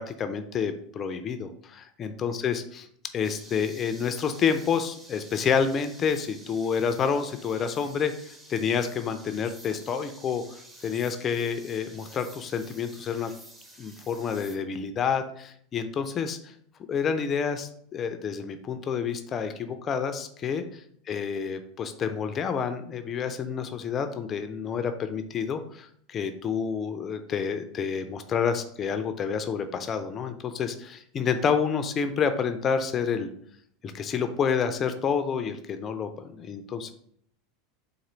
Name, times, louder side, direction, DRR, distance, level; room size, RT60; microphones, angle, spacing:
voice 1, 0.0-2.9 3.1-13.3 13.8-16.5 16.9-20.8 21.1-33.3 33.8-36.9, left 6 dB, 35° left, 8 dB, 0.4 m, -29 dB
sound 1, 3.2-14.6, right 1 dB, 15° right, 0.9 m, -50 dB
4.2 x 2.6 x 3.8 m, 0.65 s
hypercardioid pair, 85°, 0 cm